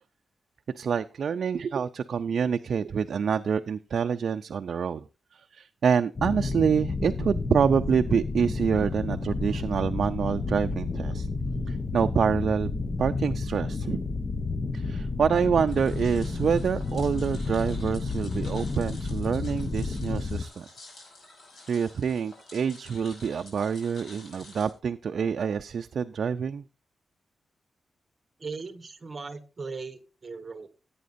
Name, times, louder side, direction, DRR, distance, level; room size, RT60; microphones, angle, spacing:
voice 1, 0.7-5.1 5.3-11.3 11.7-12.7 13.0-14.0 14.7-20.7 21.7-26.6, right 6 dB, 60° right, 8 dB, 0.4 m, -27 dB
sound 1, 6.2-20.4, left 3 dB, 30° left, 0.7 m, -31 dB
sound 2, 15.7-24.7, left 2 dB, 60° left, 5.1 m, -50 dB
voice 2, 28.4-30.7, right 4 dB, 30° right, 9 dB, 1.3 m, -38 dB
16.5 x 8.6 x 2.6 m, 0.32 s
wide cardioid pair, 155°, 0 cm